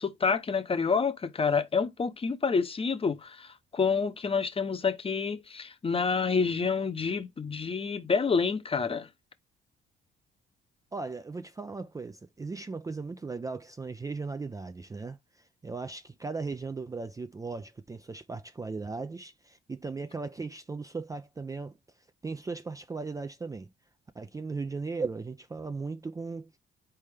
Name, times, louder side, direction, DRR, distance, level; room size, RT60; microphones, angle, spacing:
voice 1, 0.0-9.1, left 5 dB, 30° left, 0.7 m, -28 dB
voice 2, 10.9-21.8 22.2-23.7 24.2-26.5, right 4 dB, 15° right, 0.4 m, -37 dB
4.2 x 3.4 x 3.4 m
cardioid pair, 90°, 20 cm